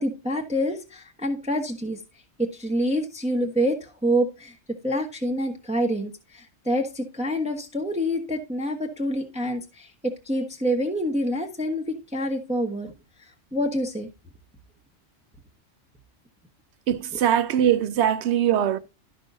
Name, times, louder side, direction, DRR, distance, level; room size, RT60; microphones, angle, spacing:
voice 1, 0.0-2.0 2.4-4.6 4.8-12.9 13.2-14.1, equal, 5° right, 1.0 m, -27 dB
voice 2, 16.9-18.8, right 10 dB, 65° right, 0.9 m, -21 dB
13.0 x 5.3 x 2.6 m
omnidirectional pair, 1.3 m